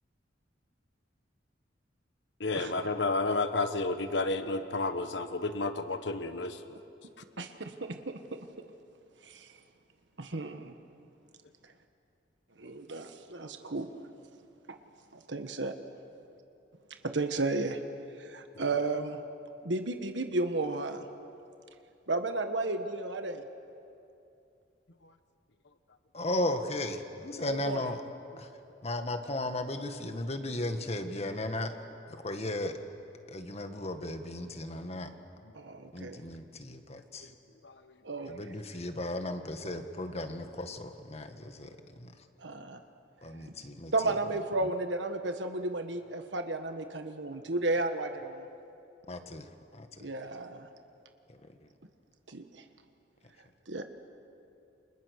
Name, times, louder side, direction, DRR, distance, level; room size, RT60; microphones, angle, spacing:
voice 1, 2.4-6.6 35.1-35.2 37.6-37.9, left 3 dB, 75° left, 9 dB, 1.3 m, -31 dB
voice 2, 7.4-8.2 9.2-9.5 10.2-10.7 12.6-13.9 15.1-15.7 17.0-17.8 18.2-19.2 19.6-21.0 22.1-23.4 27.5-27.8 35.5-36.2 38.0-38.4 42.4-42.8 43.9-48.5 50.0-50.7 52.3-52.4 53.7-53.8, right 2 dB, 80° right, 7 dB, 1.4 m, -33 dB
voice 3, 26.1-28.0 28.4-28.5 28.8-31.8 32.1-32.8 33.3-35.1 35.9-37.3 38.3-42.1 43.2-44.2 44.6-44.7 49.1-49.5 49.7-50.1, left 1 dB, 35° left, 7 dB, 1.7 m, -36 dB
29.0 x 27.0 x 6.5 m, 2.7 s
head